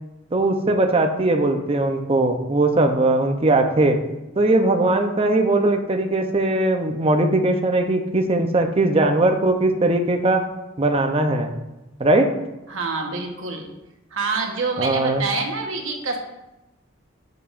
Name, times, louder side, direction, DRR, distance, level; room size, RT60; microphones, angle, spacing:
voice 1, 0.3-4.0 4.4-10.4 10.8-11.5 12.0-12.3 14.8-15.2, right 2 dB, 30° right, 4 dB, 0.6 m, -19 dB
voice 2, 12.7-13.7 14.1-16.2, right 4 dB, 90° right, 2 dB, 1.1 m, -26 dB
10.5 x 4.8 x 2.5 m, 0.99 s
head